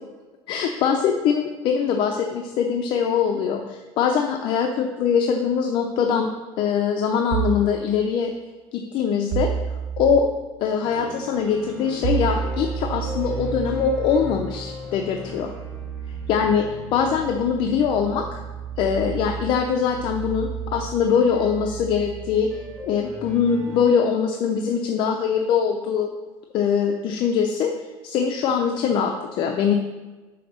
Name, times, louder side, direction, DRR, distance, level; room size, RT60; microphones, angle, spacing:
voice 1, 0.5-6.3 6.6-8.3 8.7-9.5 10.0-10.3 10.6-15.5 16.3-16.7 16.9-18.4 18.8-22.5 22.8-26.1 26.5-27.7 28.0-29.7, left 7 dB, 55° left, 3 dB, 0.6 m, -22 dB
sound 1, 7.3-7.8 9.3-10.3 12.0-23.4, right 9 dB, 50° right, 0.4 m, -32 dB
sound 2, 10.8-23.8, left 2 dB, 10° left, 1.3 m, -40 dB
5.7 x 5.1 x 6.3 m, 1.3 s
cardioid pair, 140°, 10 cm